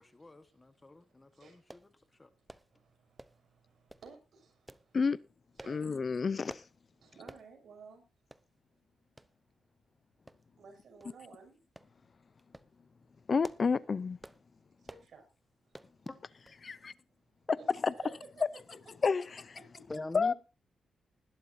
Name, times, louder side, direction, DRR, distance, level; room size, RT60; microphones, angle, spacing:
voice 1, 0.0-1.8 2.2-2.3 16.1-16.2 19.9-20.3, left 2 dB, 20° left, 1.3 m, -44 dB
sound 1, 1.7-1.9 2.5-2.7 3.2-3.4 3.9-4.1 4.7-4.9 5.6-5.8 6.5-6.7 7.3-7.5 7.9-8.0 8.3-8.5 9.2-9.3 10.3-10.6 11.0-11.1 11.8-11.9 12.4-12.7 13.2-13.7 14.2-14.4 14.8-15.1 15.7-15.9 16.5-16.6 16.9-17.0, right 1 dB, 10° right, 0.7 m, -52 dB
voice 2, 2.7-4.8 5.6-6.0 7.0-8.0 10.6-11.6 14.8-15.2 17.6-18.4 19.0-19.1, right 5 dB, 60° right, 6.7 m, -54 dB
voice 3, 5.7-6.6 13.3-14.2 16.6-16.9 17.5-17.6 17.8-17.9 19.0-19.4 20.1-20.3, left 5 dB, 40° left, 0.5 m, -29 dB
20.0 x 12.0 x 2.7 m
cardioid pair, 120°, 0 cm